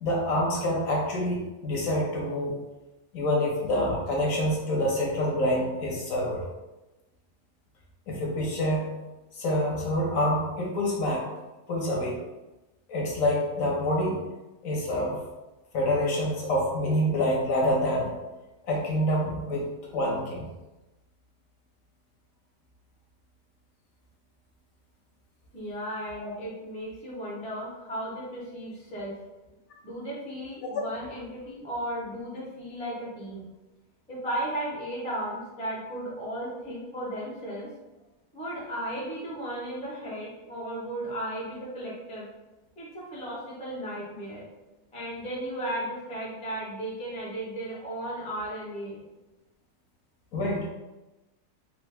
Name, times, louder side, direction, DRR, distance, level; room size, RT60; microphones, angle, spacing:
voice 1, 0.0-2.5 3.1-6.4 8.1-8.9 9.4-11.2 11.7-12.2 12.9-14.2 14.6-15.2 15.7-18.1 18.6-20.5 26.2-26.3 30.6-30.8 50.3-50.7, left 1 dB, 65° left, -3 dB, 1.1 m, -27 dB
voice 2, 25.5-29.3 29.8-33.4 34.1-37.7 38.3-42.3 42.8-44.5 44.9-49.0, right 1 dB, 10° left, -6 dB, 0.4 m, -35 dB
3.3 x 2.0 x 3.3 m, 1.1 s
omnidirectional pair, 1.7 m